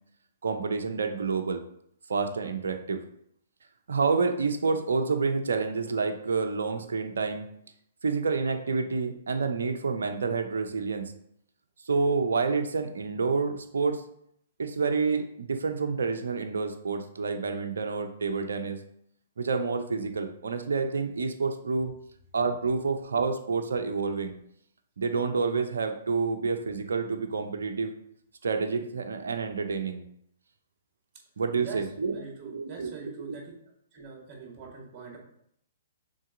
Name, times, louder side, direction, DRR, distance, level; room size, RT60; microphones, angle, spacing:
voice 1, 0.4-1.6 2.1-3.0 3.9-7.5 8.0-11.1 11.9-14.0 14.6-18.8 19.4-21.9 22.3-24.4 25.0-27.9 28.4-30.0 31.4-32.9, right 4 dB, 70° right, 4 dB, 0.7 m, -28 dB
voice 2, 32.1-33.5 33.9-35.2, right 6 dB, 30° right, -1 dB, 2.4 m, -43 dB
6.4 x 4.0 x 3.9 m, 0.71 s
figure-of-eight pair, 120°, 0 cm